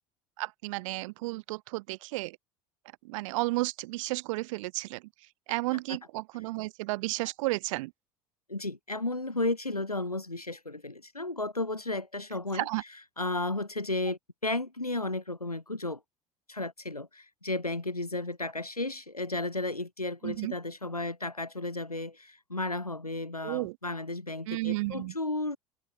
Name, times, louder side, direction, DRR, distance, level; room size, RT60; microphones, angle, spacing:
voice 1, 0.4-2.4 3.0-5.0 5.5-7.9 12.5-12.8 20.2-20.5 23.4-23.7 24.5-25.1, right 22 dB, 60° right, 2.7 m, -32 dB
voice 2, 8.5-16.0 16.5-25.6, left 2 dB, 85° left, 5.5 m, -33 dB
figure-of-eight pair, 65°, 19 cm